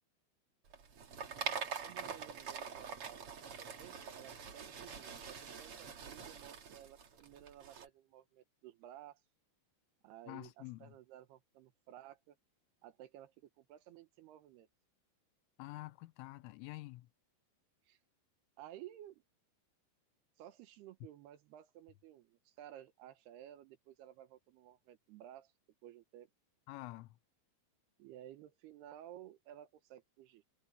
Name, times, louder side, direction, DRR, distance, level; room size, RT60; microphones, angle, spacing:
sound 1, 0.7-7.8, right 6 dB, 50° right, 1.7 m, -45 dB
voice 1, 1.8-9.2 10.0-12.4 12.8-14.7 17.9-18.0 18.6-19.2 20.4-25.5 25.8-26.3 28.0-30.4, right 12 dB, 75° right, 2.6 m, -55 dB
voice 2, 10.3-10.9 15.6-17.1 26.7-27.2, left 20 dB, 85° left, 3.3 m, -48 dB
omnidirectional pair, 5.8 m